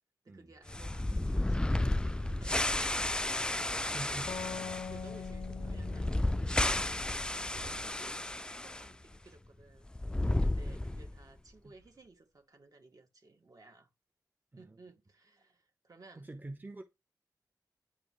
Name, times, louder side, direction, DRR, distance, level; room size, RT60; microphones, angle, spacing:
voice 1, 0.2-3.4 4.9-13.9 14.6-16.3, right 3 dB, 60° right, 2.3 m, -58 dB
sound 1, 0.7-8.9 9.1-9.2 9.9-11.2, left 1 dB, 10° left, 0.3 m, -33 dB
sound 2, 2.2-3.4 4.9-5.8 7.6-8.7 10.2-11.2, right 2 dB, 90° right, 1.9 m, -52 dB
voice 2, 3.4-4.4 10.7-10.8 11.6-11.7 14.5-14.8 16.2-16.8, right 2 dB, 25° right, 0.9 m, -46 dB
sound 3, 4.3-7.8, left 7 dB, 80° left, 0.5 m, -44 dB
9.9 x 4.9 x 3.2 m
wide cardioid pair, 80°, 7 cm